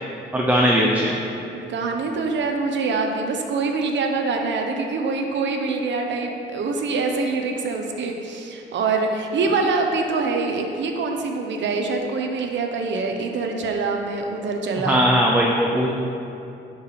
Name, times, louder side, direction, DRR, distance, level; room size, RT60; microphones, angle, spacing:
voice 1, 0.3-1.2 14.8-15.9, equal, 10° right, -2 dB, 0.9 m, -19 dB
voice 2, 1.5-15.0, right 4 dB, 65° right, 3 dB, 1.1 m, -25 dB
10.0 x 5.0 x 5.1 m, 2.8 s
cardioid pair, 90°, 20 cm